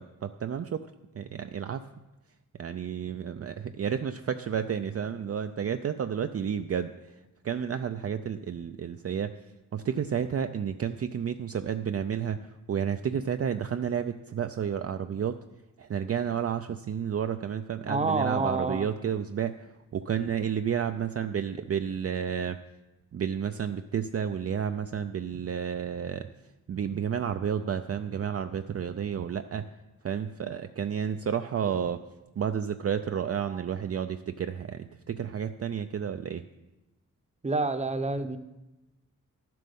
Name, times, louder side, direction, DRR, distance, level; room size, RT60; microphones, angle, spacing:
voice 1, 0.0-1.9 2.6-7.2 7.4-9.4 9.7-15.4 15.8-22.6 23.1-26.3 26.7-29.7 30.0-32.0 32.4-36.5, right 8 dB, 45° right, 8 dB, 0.5 m, -31 dB
voice 2, 17.9-18.9 37.4-38.4, right 3 dB, 20° right, 9 dB, 0.8 m, -28 dB
11.5 x 7.6 x 5.4 m, 1.0 s
wide cardioid pair, 85°, 33 cm